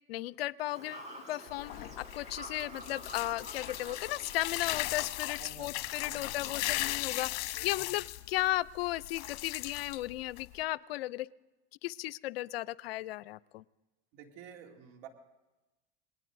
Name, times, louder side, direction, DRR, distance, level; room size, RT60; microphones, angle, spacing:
voice 1, 0.1-11.3 11.8-13.6, left 16 dB, 90° left, 20 dB, 0.5 m, -35 dB
Fowl / Bird vocalization bird call bird song, 0.7-5.7, right 1 dB, 25° right, 5.2 m, -48 dB
sound 1, 1.5-10.6, left 17 dB, 60° left, 1.0 m, -38 dB
voice 2, 5.4-6.4 7.5-7.8 14.1-15.1, right 7 dB, 75° right, 2 dB, 2.5 m, -51 dB
27.0 x 20.5 x 2.6 m, 1.1 s
hypercardioid pair, 90°, 29 cm